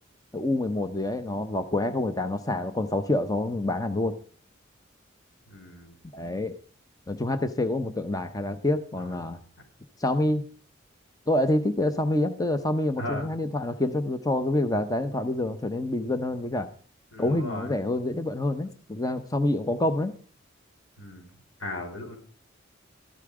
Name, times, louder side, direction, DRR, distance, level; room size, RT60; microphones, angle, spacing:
voice 1, 0.3-4.2 6.1-6.6 7.1-9.4 10.0-10.4 11.3-16.7 17.2-20.1, left 1 dB, 20° left, 9 dB, 0.8 m, -27 dB
voice 2, 5.5-5.9 9.0-9.2 13.0-13.3 17.1-17.7 21.0-21.3 21.6-22.2, left 1 dB, 85° left, 2 dB, 4.9 m, -37 dB
13.5 x 12.0 x 4.9 m, 0.42 s
head